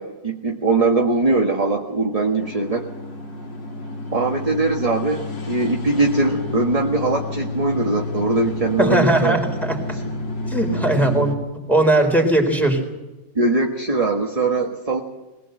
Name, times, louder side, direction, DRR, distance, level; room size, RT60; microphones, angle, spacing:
voice 1, 0.0-2.8 4.1-9.4 9.9-10.1 13.3-15.0, right 3 dB, 20° right, 1 dB, 1.5 m, -21 dB
sound 1, 2.4-11.4, left 2 dB, 85° left, 3.6 m, -30 dB
voice 2, 8.8-9.8 10.5-11.3 11.7-12.8, right 1 dB, ahead, 1 dB, 3.8 m, -18 dB
21.5 x 20.0 x 7.9 m, 1.1 s
omnidirectional pair, 1.9 m